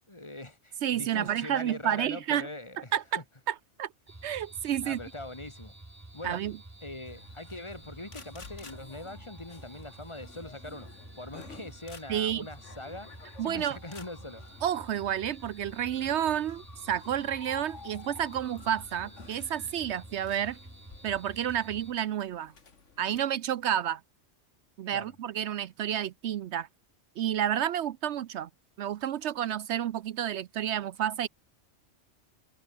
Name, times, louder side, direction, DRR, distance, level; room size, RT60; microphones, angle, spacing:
voice 1, 0.1-3.2 4.8-5.7 6.1-6.4 6.8-13.1 13.4-14.4 24.9-25.1, left 2 dB, 25° left, 1.8 m, -42 dB
voice 2, 0.8-2.5 2.9-3.9 4.2-5.0 6.2-6.6 12.1-12.5 13.4-13.8 14.6-20.6 21.0-22.5 23.0-24.0 24.8-26.7 27.2-28.5 28.8-31.3, right 10 dB, 70° right, 0.9 m, -30 dB
sound 1, 4.1-21.9, right 1 dB, 15° right, 1.5 m, -49 dB
sound 2, 7.1-23.3, left 4 dB, 85° left, 2.5 m, -52 dB
omnidirectional pair, 1.2 m